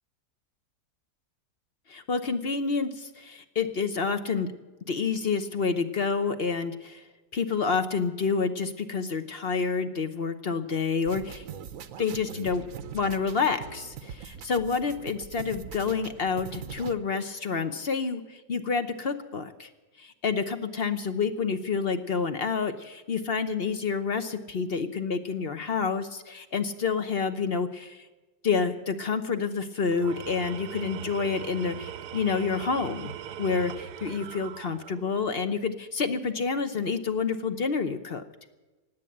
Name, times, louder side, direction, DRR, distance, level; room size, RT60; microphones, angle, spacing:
voice 1, 1.9-4.5 4.9-7.0 7.3-11.4 12.0-12.6 12.9-19.7 20.0-28.1 28.4-33.1 33.4-38.2, left 5 dB, 45° left, 9 dB, 1.0 m, -28 dB
sound 1, 11.1-16.9, right 7 dB, 60° right, 1.1 m, -42 dB
Tools, 29.9-35.3, right 10 dB, 80° right, 1.2 m, -40 dB
19.0 x 8.3 x 8.6 m, 1.2 s
omnidirectional pair, 1.7 m